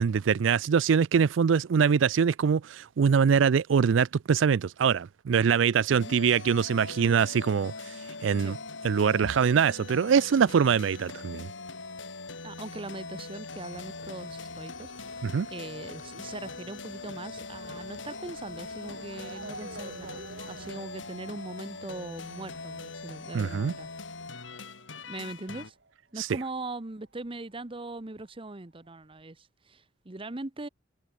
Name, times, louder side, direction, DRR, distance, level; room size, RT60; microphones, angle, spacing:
voice 1, 0.0-7.7 8.2-8.5 8.8-11.5 15.2-15.5 23.3-23.7 26.2-26.3, right 6 dB, 85° right, 0.4 m, -23 dB
sound 1, 6.0-25.7, left 3 dB, 85° left, 3.1 m, -42 dB
voice 2, 12.4-15.2 15.5-23.9 25.1-25.8 26.1-30.7, right 2 dB, 30° right, 1.0 m, -40 dB
sound 2, 13.5-20.7, left 3 dB, 45° left, 4.0 m, -54 dB
Motor vehicle (road) / Siren, 13.7-26.8 27.0-28.2 28.8-28.9 29.2-29.3, right 3 dB, 65° right, 6.3 m, -51 dB
head